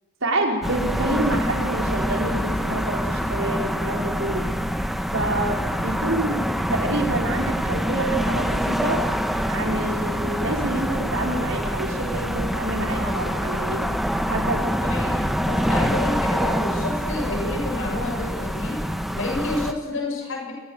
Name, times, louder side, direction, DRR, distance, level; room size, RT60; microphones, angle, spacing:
voice 1, 0.2-4.5 5.1-9.0 9.5-13.9 14.3-14.7, right 2 dB, 65° right, 1 dB, 5.5 m, -27 dB
sound 1, 0.6-19.7, equal, ahead, 1.5 m, -25 dB
voice 2, 14.8-18.8 19.1-20.5, left 2 dB, 65° left, 0 dB, 7.9 m, -29 dB
29.5 x 26.0 x 6.8 m, 1.1 s
head